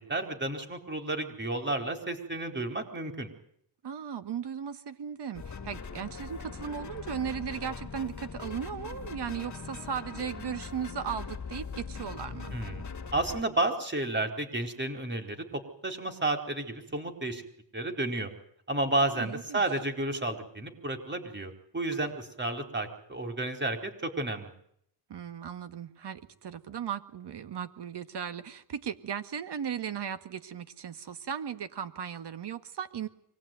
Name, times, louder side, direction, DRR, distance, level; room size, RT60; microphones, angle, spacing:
voice 1, 0.1-3.3 12.5-12.8 13.1-17.4 17.7-18.3 18.7-24.5, right 2 dB, 25° right, 5 dB, 4.6 m, -32 dB
voice 2, 3.8-12.5 19.0-19.6 25.1-33.1, right 8 dB, 70° right, 10 dB, 1.9 m, -37 dB
sound 1, 5.3-13.4, left 5 dB, 40° left, 2.1 m, -41 dB
24.5 x 18.5 x 9.4 m, 0.70 s
cardioid pair, 90°, 43 cm